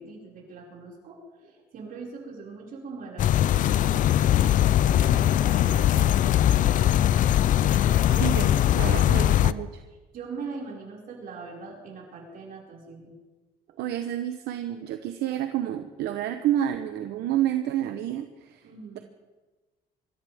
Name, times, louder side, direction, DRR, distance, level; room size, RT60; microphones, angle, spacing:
voice 1, 0.0-7.1 7.6-8.4 10.1-13.1 13.7-13.8 18.6-19.0, right 4 dB, 60° right, -3 dB, 5.5 m, -42 dB
sound 1, 3.2-9.5, left 11 dB, 50° left, 0.4 m, -21 dB
voice 2, 8.2-9.8 13.8-18.6, right 11 dB, 80° right, 8 dB, 0.9 m, -29 dB
25.0 x 14.0 x 3.5 m, 1.2 s
cardioid pair, 110°, 17 cm